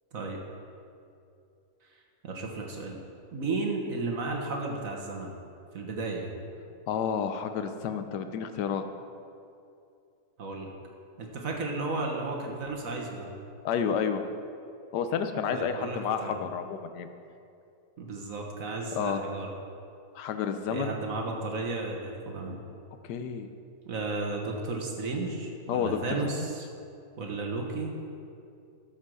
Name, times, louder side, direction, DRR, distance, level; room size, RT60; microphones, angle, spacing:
voice 1, 2.2-3.0 3.3-5.4 5.7-6.3 10.4-10.7 11.2-13.3 15.5-16.4 18.0-19.5 20.7-22.6 23.9-26.6 27.2-27.9, right 3 dB, 55° right, 0 dB, 1.6 m, -33 dB
voice 2, 6.9-8.8 13.6-14.2 14.9-17.1 18.9-19.2 20.1-20.9 23.0-23.5 25.7-26.2, left 7 dB, 90° left, 8 dB, 1.3 m, -30 dB
13.0 x 5.4 x 6.3 m, 2.5 s
omnidirectional pair, 1.7 m